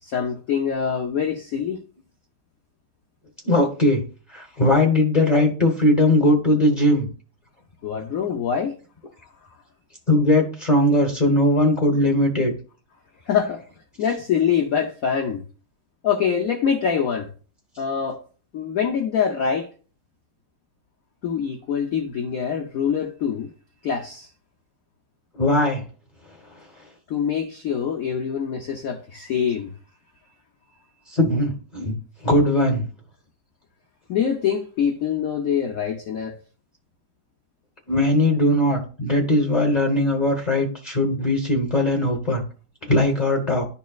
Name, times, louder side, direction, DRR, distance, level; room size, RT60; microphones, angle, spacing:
voice 1, 0.0-1.8 7.8-8.8 13.3-13.6 14.0-15.4 16.0-17.3 17.8-18.2 18.5-19.7 21.2-23.5 23.8-24.3 27.1-29.7 34.1-36.4, left 7 dB, 80° left, 0.7 m, -24 dB
voice 2, 3.4-4.0 4.3-7.1 10.1-12.5 25.3-25.8 31.1-32.0 32.2-32.9 37.9-42.4 42.8-43.6, left 1 dB, 40° left, 0.5 m, -19 dB
11.0 x 4.2 x 2.3 m
omnidirectional pair, 2.4 m